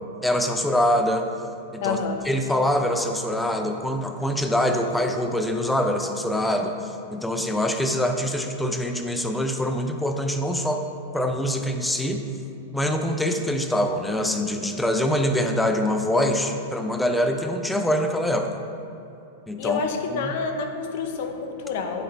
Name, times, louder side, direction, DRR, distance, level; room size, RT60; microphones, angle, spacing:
voice 1, 0.2-1.2 1.7-2.0 2.2-6.8 7.1-10.8 11.1-12.2 12.7-18.6 19.5-19.8 20.1-20.3, left 1 dB, 5° left, 4 dB, 0.6 m, -24 dB
voice 2, 1.8-2.3 19.6-22.0, left 5 dB, 60° left, 5 dB, 0.8 m, -28 dB
9.2 x 3.8 x 4.2 m, 2.8 s
hypercardioid pair, 115°, 0 cm